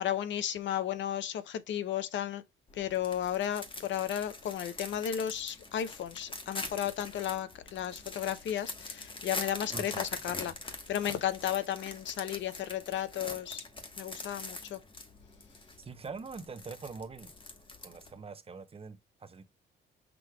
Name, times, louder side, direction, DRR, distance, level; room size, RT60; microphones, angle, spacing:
voice 1, 0.0-2.4 2.7-13.6 14.0-14.8, left 10 dB, 70° left, 0.7 m, -34 dB
sound 1, 2.7-18.2, left 3 dB, 25° left, 1.1 m, -43 dB
voice 2, 9.7-10.1 15.8-17.3 17.8-19.4, right 4 dB, 30° right, 0.7 m, -44 dB
6.1 x 3.2 x 2.3 m
cardioid pair, 90°, 20 cm